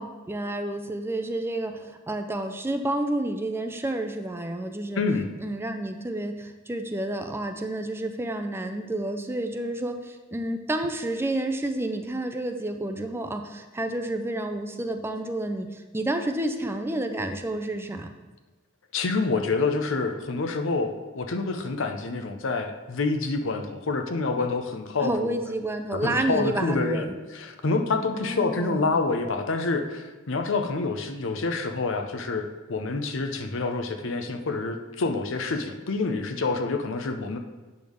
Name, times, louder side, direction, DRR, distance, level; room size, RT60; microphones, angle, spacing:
voice 1, 0.0-5.0 5.4-18.1 25.0-27.1 28.1-28.9, right 1 dB, 10° right, 6 dB, 0.4 m, -30 dB
voice 2, 5.0-5.3 18.9-25.4 25.9-27.1 27.3-37.4, left 3 dB, 65° left, 6 dB, 0.7 m, -27 dB
8.4 x 3.5 x 6.2 m, 1.2 s
head